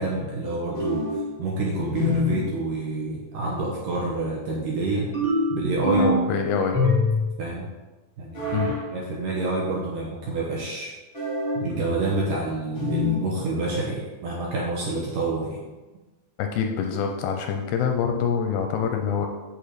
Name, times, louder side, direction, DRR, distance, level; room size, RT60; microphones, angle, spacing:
voice 1, 0.0-5.1 5.5-6.1 7.4-7.7 8.2-8.6 8.9-10.9 11.6-15.6, right 2 dB, 65° right, -3 dB, 2.2 m, -28 dB
sound 1, 0.7-1.3 1.9-2.5 5.1-6.3 6.7-7.4 8.3-8.8 11.1-11.7 12.7-13.3, left 2 dB, 40° left, 0.8 m, -24 dB
voice 2, 6.0-6.8 8.5-8.8 16.4-19.3, left 7 dB, 80° left, 4 dB, 2.5 m, -25 dB
8.3 x 6.6 x 4.3 m, 1.2 s
omnidirectional pair, 5.1 m